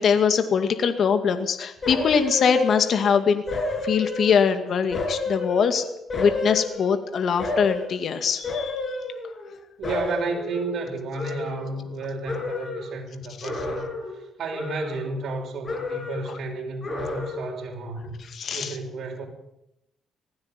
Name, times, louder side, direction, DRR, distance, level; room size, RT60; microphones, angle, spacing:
voice 1, 0.0-3.4 3.8-5.8 6.2-8.8 13.4-13.5 18.3-18.7, left 6 dB, 60° left, 8 dB, 2.3 m, -22 dB
sound 1, 1.8-3.1 3.5-4.6 4.9-7.0 7.4-8.0 8.4-9.6 9.8-12.0 12.3-12.9 13.4-14.2 14.5-15.4 15.6-16.4 16.8-17.6 18.0-18.1, left 3 dB, 35° left, 7.5 m, -31 dB
voice 2, 9.8-13.9 14.1-18.1 18.5-19.3, right 3 dB, 65° right, 1 dB, 5.9 m, -32 dB
19.5 x 15.5 x 9.3 m, 0.86 s
cardioid pair, 90°, 0 cm